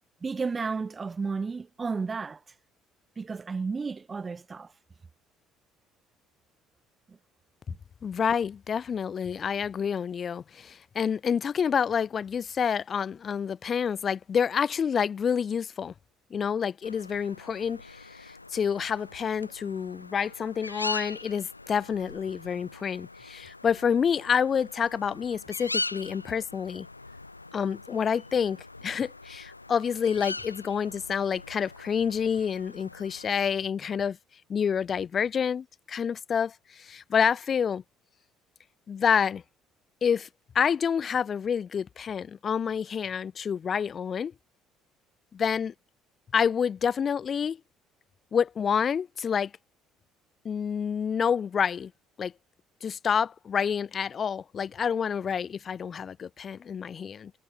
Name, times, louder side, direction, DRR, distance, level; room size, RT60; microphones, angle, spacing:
voice 1, 0.2-2.4 3.2-4.7 7.1-7.2, right 4 dB, 25° right, 1.2 m, -32 dB
voice 2, 8.0-15.9 16.3-26.9 27.5-34.2 34.5-37.8 38.9-39.4 40.0-40.3 40.5-44.3 45.3-45.7 46.3-47.6 48.3-49.5 50.4-51.9 52.2-52.3 52.8-57.3, left 7 dB, 40° left, 0.8 m, -28 dB
sound 1, 16.8-33.5, left 3 dB, 90° left, 1.0 m, -41 dB
figure-of-eight pair, 55°, 0 cm